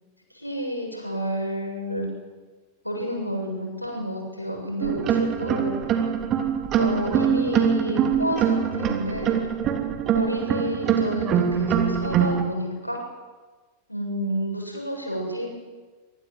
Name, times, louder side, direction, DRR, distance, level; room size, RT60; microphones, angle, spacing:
voice 1, 0.3-2.1 2.8-5.8 6.8-9.4 10.1-13.0 13.9-15.5, equal, 90° left, 1 dB, 7.4 m, -30 dB
sound 1, 4.8-12.4, right 8 dB, 35° right, 3.1 m, -23 dB
24.0 x 22.0 x 8.0 m, 1.3 s
figure-of-eight pair, 90°, 0 cm